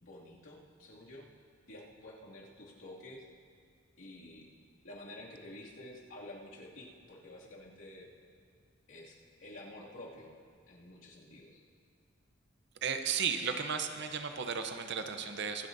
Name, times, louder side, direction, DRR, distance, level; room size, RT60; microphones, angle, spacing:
voice 1, 0.0-1.3 1.7-3.3 4.0-4.5 4.8-8.1 8.9-10.3 10.7-11.6, left 1 dB, 70° left, -5 dB, 2.4 m, -50 dB
voice 2, 12.8-15.7, right 6 dB, 55° right, 7 dB, 0.7 m, -34 dB
24.5 x 9.4 x 2.7 m, 2.1 s
head